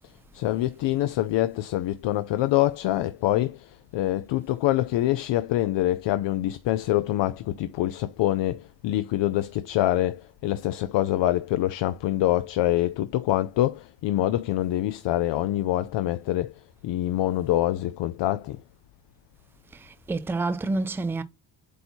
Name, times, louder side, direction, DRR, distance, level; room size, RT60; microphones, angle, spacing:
voice 1, 0.3-18.6, left 14 dB, 70° left, 0.5 m, -25 dB
voice 2, 19.7-21.2, right 3 dB, 5° right, 0.3 m, -28 dB
8.2 x 2.7 x 4.3 m
cardioid pair, 155°, 45 cm